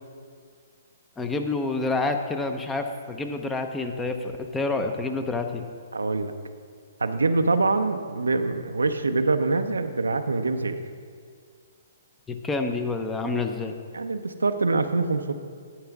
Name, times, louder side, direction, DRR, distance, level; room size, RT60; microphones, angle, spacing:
voice 1, 1.2-5.7 12.3-13.7, left 3 dB, 10° left, 6 dB, 0.7 m, -28 dB
voice 2, 5.9-6.3 7.0-10.8 13.9-15.3, right 3 dB, 90° right, 8 dB, 0.6 m, -24 dB
11.0 x 8.9 x 3.5 m, 2.1 s
hypercardioid pair, 135°, 0 cm